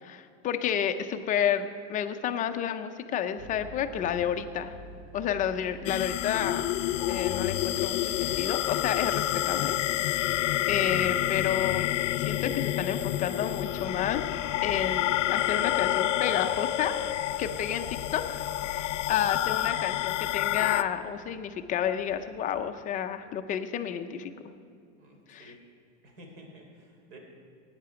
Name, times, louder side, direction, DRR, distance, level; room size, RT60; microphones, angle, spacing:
voice 1, 0.0-4.7 5.1-6.7 7.1-9.8 10.1-11.9 12.2-14.3 14.6-17.0 17.4-18.4 18.7-24.3 25.3-25.5, left 9 dB, 20° left, 8 dB, 0.5 m, -30 dB
sound 1, 3.4-22.8, right 1 dB, 25° right, 0.9 m, -49 dB
sound 2, 5.9-20.8, left 14 dB, 80° left, 0.6 m, -29 dB
voice 2, 25.0-25.6 26.0-27.2, right 1 dB, 55° right, 2 dB, 3.5 m, -51 dB
17.5 x 9.7 x 5.0 m, 2.4 s
supercardioid pair, 145°, 36 cm